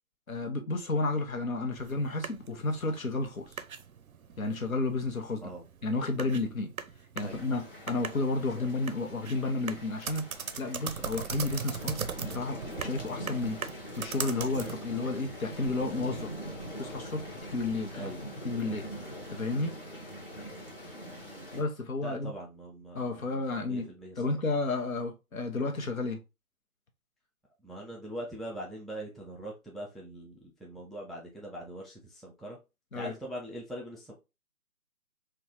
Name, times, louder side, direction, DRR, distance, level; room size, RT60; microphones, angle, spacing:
voice 1, 0.3-3.5 4.4-5.5 5.8-6.7 7.2-16.3 16.8-19.7 21.5-22.3 22.9-23.9 24.2-26.2 32.9-33.2, left 3 dB, 65° left, 0.8 m, -32 dB
sound 1, 1.7-14.9, right 7 dB, 70° right, 0.5 m, -40 dB
sound 2, 7.2-21.6, equal, 35° left, 1.0 m, -43 dB
voice 2, 22.0-24.1 27.6-32.6 32.9-34.1, right 1 dB, ahead, 0.4 m, -42 dB
3.5 x 2.3 x 2.8 m
hypercardioid pair, 180°, 45 cm